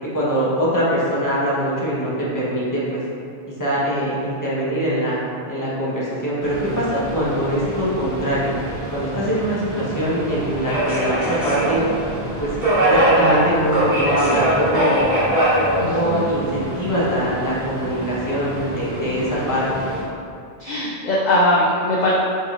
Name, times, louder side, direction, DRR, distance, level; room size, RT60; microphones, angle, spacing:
voice 1, 0.0-3.0 3.6-5.2 5.5-8.5 8.9-11.8 12.4-12.5 12.9-15.1 15.7-19.8, equal, 20° left, -8 dB, 1.0 m, -23 dB
Subway metro underground, 6.4-20.0, right 1 dB, 35° right, 1.3 m, -23 dB
voice 2, 15.8-16.2 20.6-22.1, left 1 dB, 50° left, -6 dB, 0.6 m, -20 dB
5.5 x 3.7 x 2.4 m, 2.4 s
omnidirectional pair, 1.1 m